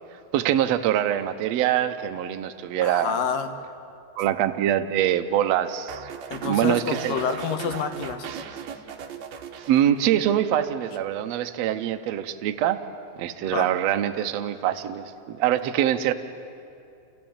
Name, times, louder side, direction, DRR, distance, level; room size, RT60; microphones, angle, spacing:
voice 1, 0.3-3.2 4.2-6.0 6.4-7.2 9.7-12.8 13.2-16.1, right 11 dB, 85° right, 8 dB, 1.5 m, -24 dB
voice 2, 2.8-3.5 6.3-8.3 13.5-13.7, left 7 dB, 70° left, 7 dB, 2.6 m, -28 dB
sound 1, 5.9-10.3 10.6-11.0, right 8 dB, 65° right, 1.8 m, -37 dB
29.0 x 14.5 x 8.8 m, 2.6 s
omnidirectional pair, 4.2 m